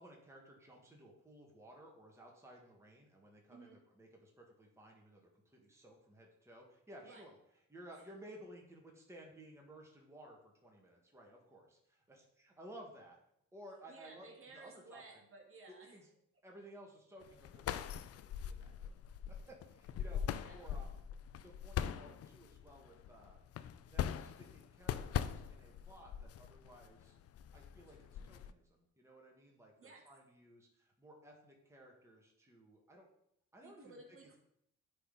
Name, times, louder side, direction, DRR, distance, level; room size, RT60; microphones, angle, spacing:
voice 1, 0.0-7.4 7.7-13.2 13.5-14.3 14.5-15.0 15.7-16.1 16.4-18.0 18.4-19.0 19.5-20.2 20.5-21.0 21.3-23.4 23.8-27.2 27.5-28.0 28.3-33.1 33.5-34.0, right 1 dB, 10° right, -1 dB, 1.7 m, -57 dB
voice 2, 3.5-3.8 7.0-7.3 13.9-16.0 20.3-20.7 29.8-30.1 33.6-34.4, right 3 dB, 45° right, 0 dB, 1.8 m, -56 dB
sound 1, 17.2-28.5, left 9 dB, 55° left, 0.5 m, -42 dB
9.7 x 4.0 x 3.9 m, 0.73 s
cardioid pair, 90°, 30 cm